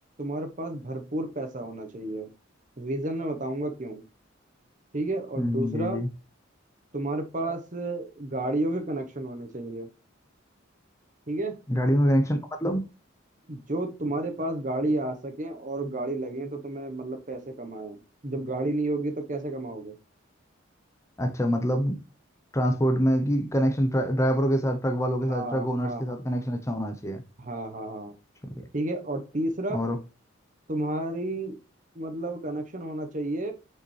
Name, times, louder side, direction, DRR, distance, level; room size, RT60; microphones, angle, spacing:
voice 1, 0.2-2.3 2.8-4.0 4.9-6.0 6.9-9.9 11.3-11.6 13.5-20.0 25.2-26.2 27.4-28.1 28.7-29.8 30.7-31.6 31.9-33.5, right 2 dB, 40° right, 1.0 m, -31 dB
voice 2, 5.4-6.1 11.7-12.9 21.2-22.0 22.5-27.2 29.7-30.0, equal, 15° left, 0.7 m, -25 dB
7.2 x 5.0 x 3.2 m
head